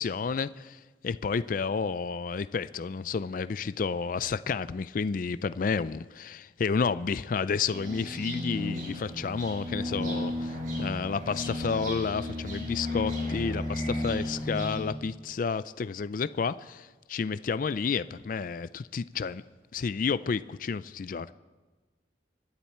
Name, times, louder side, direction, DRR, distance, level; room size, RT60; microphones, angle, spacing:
voice 1, 0.0-19.4 19.7-21.3, left 5 dB, 50° left, 15 dB, 0.4 m, -31 dB
sound 1, 7.7-14.8, left 1 dB, 45° right, 5.2 m, -34 dB
26.5 x 10.5 x 4.4 m, 1.3 s
head